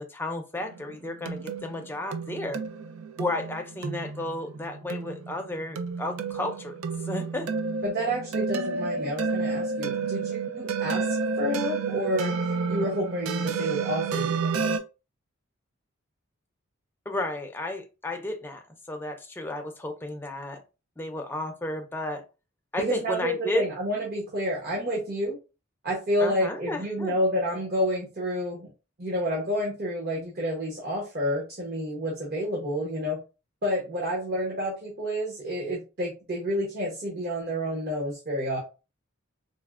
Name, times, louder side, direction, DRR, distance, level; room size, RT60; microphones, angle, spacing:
voice 1, 0.0-2.6 3.2-6.7 7.1-7.5 17.1-18.6 18.9-20.6 21.0-22.2 22.7-23.7 26.2-27.2, left 1 dB, 10° left, 5 dB, 0.4 m, -33 dB
sound 1, 0.6-14.8, right 4 dB, 80° right, 0.4 m, -31 dB
voice 2, 7.8-12.3 12.7-14.7 22.8-25.4 25.8-28.7 29.0-33.2 33.6-38.6, equal, 45° right, -3 dB, 0.8 m, -29 dB
4.1 x 2.0 x 2.3 m, 0.30 s
head